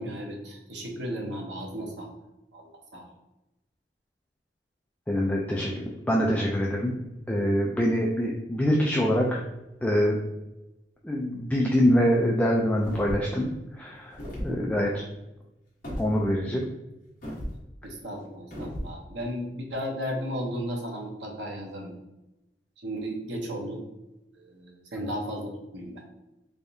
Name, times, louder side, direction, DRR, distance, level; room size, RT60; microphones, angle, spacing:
voice 1, 0.0-2.1 2.5-3.0 14.5-14.8 17.8-21.9 22.8-23.8 24.4-26.0, equal, 85° right, 1 dB, 0.8 m, -35 dB
voice 2, 5.1-6.9 7.3-9.4 9.8-10.2 11.0-13.5 13.8-15.0 16.0-16.6, equal, 10° left, -2 dB, 0.3 m, -24 dB
sound 1, 12.8-13.4 14.1-14.5 15.8-16.1 17.2-17.6 18.5-18.9, equal, 50° left, 1.2 m, -35 dB
3.4 x 3.3 x 2.7 m, 0.95 s
head